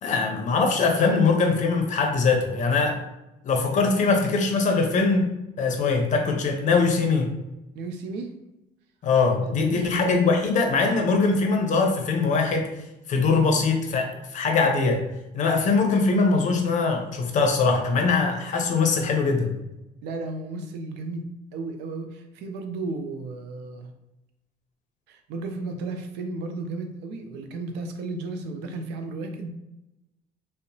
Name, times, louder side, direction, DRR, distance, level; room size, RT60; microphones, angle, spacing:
voice 1, 0.0-3.0 3.4-7.4 9.0-12.7 13.1-15.0 15.3-19.5, left 4 dB, 45° left, 3 dB, 0.6 m, -22 dB
voice 2, 7.7-8.3 9.5-10.1 20.0-23.9 25.1-29.5, right 3 dB, 85° right, 6 dB, 0.4 m, -34 dB
2.7 x 2.0 x 2.6 m, 0.95 s
cardioid pair, 110°, 17 cm